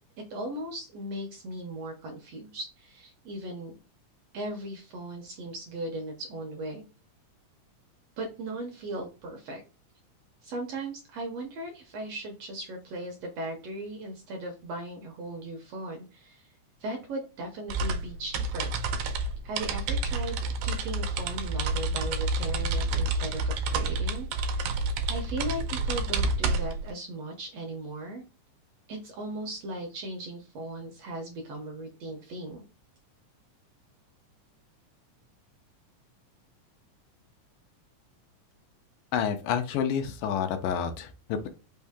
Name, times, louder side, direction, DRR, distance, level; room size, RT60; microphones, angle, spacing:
voice 1, 0.3-3.7 4.3-6.8 8.2-9.6 10.4-16.5 16.8-18.7 19.4-28.2 28.9-32.6, right 1 dB, 70° right, 2 dB, 1.6 m, -38 dB
sound 1, 17.7-26.9, right 3 dB, 85° right, 2.2 m, -29 dB
voice 2, 39.1-41.5, left 7 dB, 85° left, 6 dB, 2.3 m, -29 dB
5.5 x 2.7 x 3.5 m, 0.32 s
omnidirectional pair, 3.7 m